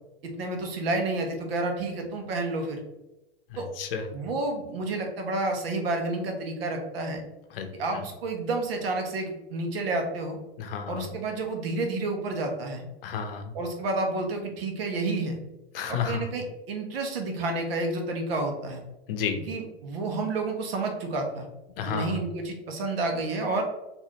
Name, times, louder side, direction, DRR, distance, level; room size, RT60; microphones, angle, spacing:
voice 1, 0.2-2.8 3.6-3.7 4.1-7.2 7.7-10.4 10.9-12.8 13.5-15.4 15.9-18.8 19.5-21.5 21.9-23.6, right 2 dB, 65° right, 3 dB, 1.0 m, -30 dB
voice 2, 3.5-4.1 7.5-7.7 7.9-8.0 10.6-11.1 13.0-13.5 15.7-16.2 19.1-19.4 21.8-22.2, left 6 dB, 55° left, 6 dB, 0.7 m, -31 dB
3.9 x 2.6 x 3.0 m, 0.97 s
hypercardioid pair, 125°, 33 cm